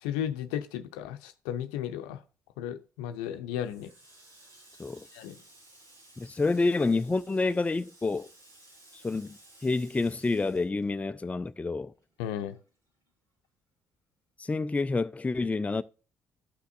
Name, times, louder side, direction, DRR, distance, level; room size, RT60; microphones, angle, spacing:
voice 1, 0.0-2.2 2.6-3.9 5.1-5.4 12.2-12.6, left 10 dB, 80° left, 0.6 m, -34 dB
Water tap faucet, 3.6-11.5 11.8-13.1, right 1 dB, 90° right, 4.3 m, -57 dB
voice 2, 6.2-8.3 9.0-11.9 14.4-15.8, left 3 dB, 15° left, 0.4 m, -28 dB
13.0 x 5.8 x 2.6 m
hypercardioid pair, 50°, 9 cm